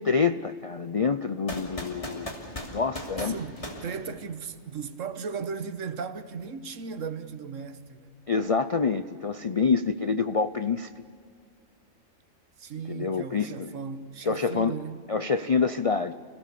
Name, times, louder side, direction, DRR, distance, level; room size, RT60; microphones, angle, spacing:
voice 1, 0.0-2.3 2.7-3.3 8.3-10.9 12.9-13.7 14.3-14.8 15.1-16.1, left 5 dB, 50° left, 0.4 m, -26 dB
sound 1, 1.5-4.7, left 1 dB, 25° left, 2.9 m, -38 dB
voice 2, 3.2-8.1 12.6-15.0, right 6 dB, 70° right, 1.5 m, -36 dB
30.0 x 17.5 x 6.9 m
omnidirectional pair, 1.4 m